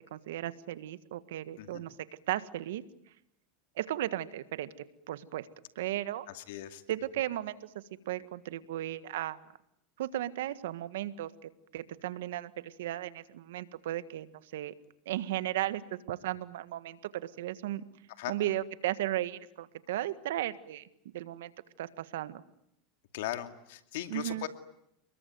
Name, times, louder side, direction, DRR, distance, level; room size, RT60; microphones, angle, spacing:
voice 1, 0.1-1.9 2.3-2.8 3.8-4.7 5.1-5.5 5.7-6.3 6.9-9.4 10.0-14.7 15.0-17.8 18.3-20.9 21.1-21.5 21.8-22.4 24.1-24.5, right 13 dB, 80° right, 13 dB, 1.6 m, -35 dB
voice 2, 6.3-6.8 18.2-18.4 23.1-24.5, left 13 dB, 75° left, 8 dB, 2.4 m, -38 dB
29.0 x 21.5 x 9.4 m, 0.77 s
supercardioid pair, 110°, 0 cm